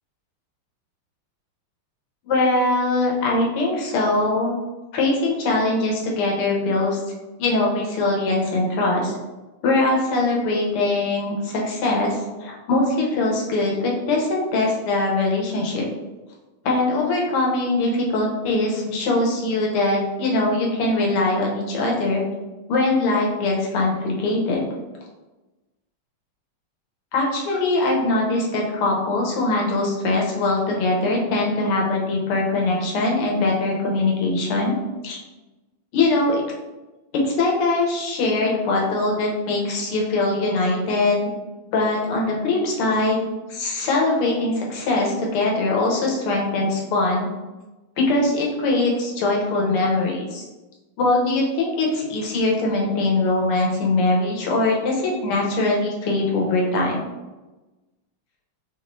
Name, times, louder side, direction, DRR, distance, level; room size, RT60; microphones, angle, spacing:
voice 1, 2.2-4.6 4.9-7.0 7.4-9.1 9.6-15.8 16.7-22.2 22.7-24.6 27.1-34.8 35.0-35.2 35.9-36.4 37.2-41.2 41.7-43.2 43.5-47.3 48.1-50.4 51.0-57.0, left 2 dB, 80° left, -2 dB, 1.8 m, -22 dB
3.9 x 3.0 x 2.6 m, 1.1 s
omnidirectional pair, 2.4 m